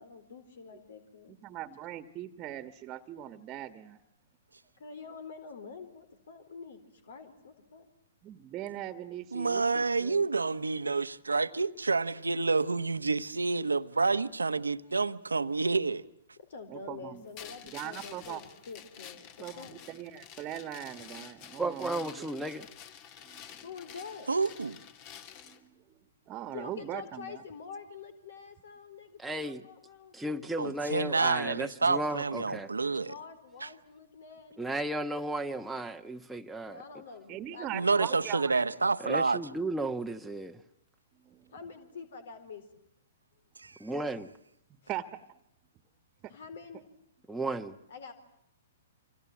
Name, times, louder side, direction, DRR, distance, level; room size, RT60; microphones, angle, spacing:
voice 1, 0.0-1.4 4.8-7.9 16.4-19.8 23.6-24.3 26.5-30.4 33.0-34.8 36.7-38.3 41.5-42.7 44.8-44.9 46.2-46.8 47.9-48.1, left 5 dB, 65° left, 4.1 m, -47 dB
voice 2, 1.3-4.0 8.2-10.3 16.7-17.2 17.6-18.4 19.4-22.4 23.2-23.6 25.4-26.0 26.3-27.4 37.3-38.7 41.2-41.5 44.9-45.2 46.2-46.4, right 12 dB, 30° right, 1.6 m, -41 dB
voice 3, 9.3-16.0 24.3-24.8 30.6-33.1 33.6-33.7 37.7-39.4 43.6-43.8, right 4 dB, 90° right, 1.2 m, -29 dB
sound 1, 17.3-25.6, left 9 dB, 40° left, 2.5 m, -49 dB
voice 4, 21.6-22.7 29.2-29.6 30.1-32.7 34.6-36.8 39.0-40.6 43.8-44.3 47.3-47.7, right 2 dB, 5° right, 1.2 m, -34 dB
28.0 x 26.5 x 7.4 m
hypercardioid pair, 120°, 0 cm